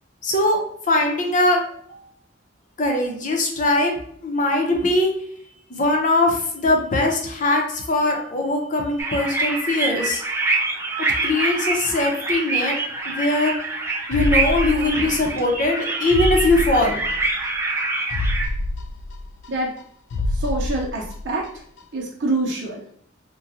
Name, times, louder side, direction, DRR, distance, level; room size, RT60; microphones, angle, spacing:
voice 1, 0.2-2.0 2.8-4.0 4.2-5.1 5.7-10.2 11.2-13.5 14.1-17.1, left 2 dB, 45° left, 1 dB, 0.7 m, -21 dB
sound 1, 9.0-18.5, right 3 dB, 15° right, 0.4 m, -25 dB
sound 2, 14.1-15.5 15.8-15.9 16.1-17.5 17.8-17.9 18.1-19.8 20.1-21.5 21.8-21.9, left 2 dB, 70° left, 0.3 m, -27 dB
voice 2, 20.3-21.4 21.9-22.8, right 2 dB, 75° right, -3 dB, 0.7 m, -25 dB
3.7 x 2.2 x 2.8 m, 0.65 s
head